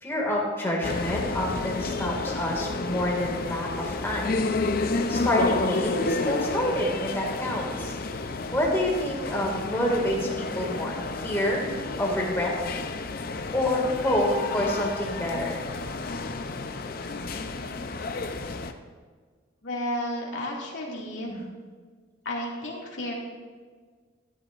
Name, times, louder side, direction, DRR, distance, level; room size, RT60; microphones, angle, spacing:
voice 1, 0.0-4.4 5.1-8.0 8.5-11.6 12.0-12.7 13.5-15.6 20.9-21.4, left 1 dB, 10° left, -2 dB, 2.1 m, -28 dB
sound 1, 0.8-18.7, left 3 dB, 45° left, 0.6 m, -31 dB
voice 2, 19.6-21.4 22.2-23.1, left 1 dB, 70° left, -3 dB, 2.2 m, -32 dB
13.5 x 11.5 x 2.5 m, 1.5 s
head